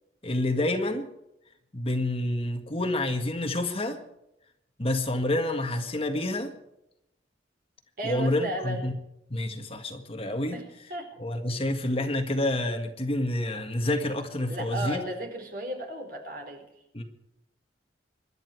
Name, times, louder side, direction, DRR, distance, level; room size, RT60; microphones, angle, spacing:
voice 1, 0.2-1.1 1.7-4.0 4.8-6.5 8.0-8.9 9.3-10.6 11.2-15.0 16.9-17.0, left 1 dB, 30° left, 5 dB, 1.8 m, -28 dB
voice 2, 8.0-8.9 10.5-10.6 10.9-11.1 11.5-11.6 14.5-16.6, right 1 dB, 50° right, 3 dB, 4.5 m, -34 dB
25.5 x 12.0 x 4.6 m, 0.83 s
head